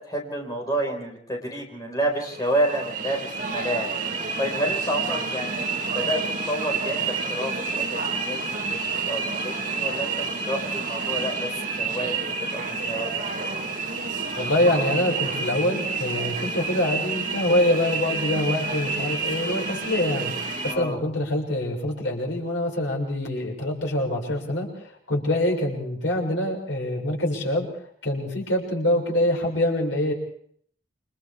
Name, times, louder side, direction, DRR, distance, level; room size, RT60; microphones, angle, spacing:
voice 1, 0.0-5.6 5.9-6.2 6.5-11.5 11.8-13.1 20.7-21.0, equal, 20° left, 1 dB, 4.9 m, -29 dB
sound 1, 2.2-20.8, right 4 dB, 40° right, 2.9 m, -29 dB
voice 2, 14.4-20.3 20.6-24.7 25.1-27.7 28.0-30.1, left 1 dB, 85° left, 0 dB, 6.5 m, -25 dB
29.0 x 26.0 x 3.6 m, 0.62 s
head